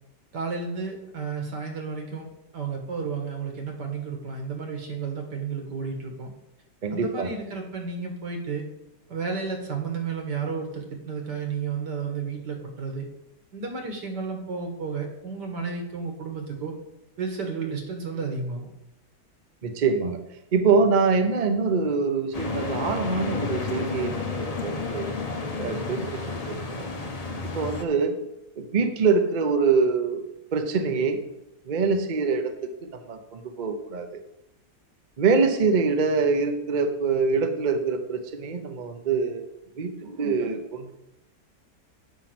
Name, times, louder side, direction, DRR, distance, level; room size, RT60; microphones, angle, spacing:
voice 1, 0.3-6.3 6.9-8.7 9.1-13.1 13.5-16.7 17.2-18.7, right 5 dB, 80° right, 3 dB, 2.1 m, -32 dB
voice 2, 6.8-7.3 19.6-20.2 20.5-25.1 25.6-26.9 27.5-28.1 28.6-30.3 30.5-31.2 31.6-32.5 32.8-34.2 35.2-39.5 39.8-40.9, right 4 dB, 40° right, 5 dB, 0.6 m, -24 dB
sound 1, 22.3-27.8, left 3 dB, 55° left, 0.4 m, -31 dB
7.3 x 5.8 x 5.9 m, 0.85 s
omnidirectional pair, 1.8 m